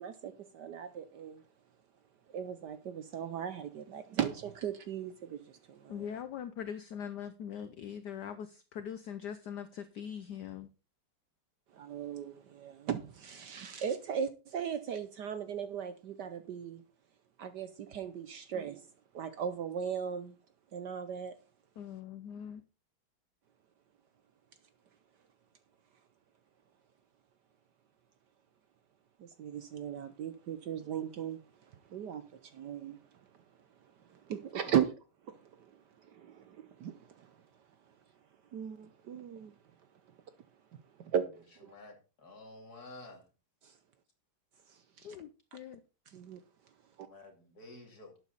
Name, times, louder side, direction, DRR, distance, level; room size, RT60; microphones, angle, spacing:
voice 1, 0.0-1.4 2.3-6.0 11.7-16.8 17.4-18.9 19.1-20.4 20.7-21.4 29.2-33.4 34.0-34.9 35.2-37.4 38.5-39.5 40.7-41.7 43.6-43.8 44.7-45.1 46.1-46.4 47.0-47.1, right 8 dB, 65° right, 1.2 m, -38 dB
voice 2, 5.9-10.7 21.8-22.6 45.0-45.8, left 8 dB, 65° left, 1.2 m, -42 dB
voice 3, 41.7-43.3 47.1-48.2, left 2 dB, 45° left, 3.0 m, -51 dB
12.0 x 8.4 x 4.0 m
omnidirectional pair, 2.3 m